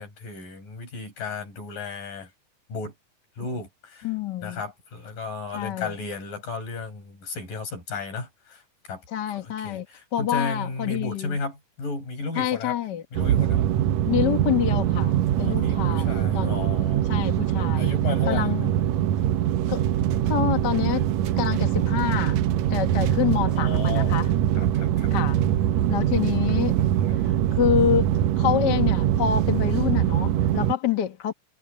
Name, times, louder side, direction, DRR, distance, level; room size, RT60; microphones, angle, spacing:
voice 1, 0.0-2.3 2.7-2.9 3.4-4.1 4.4-12.8 13.1-13.6 15.4-17.1 17.8-18.5 23.2-24.2 24.6-25.1 27.0-27.2, left 4 dB, 70° left, 9.0 m, -34 dB
voice 2, 4.0-4.6 5.5-5.9 9.1-9.9 10.1-11.4 12.3-13.0 14.1-16.7 17.1-17.9 18.3-18.7 19.7-19.8 20.3-21.1 21.4-22.4 22.7-24.3 25.1-25.4 25.9-26.8 27.2-31.3, left 10 dB, 50° left, 1.2 m, -27 dB
sound 1, 13.1-30.7, right 11 dB, 75° right, 1.7 m, -23 dB
omnidirectional pair, 4.1 m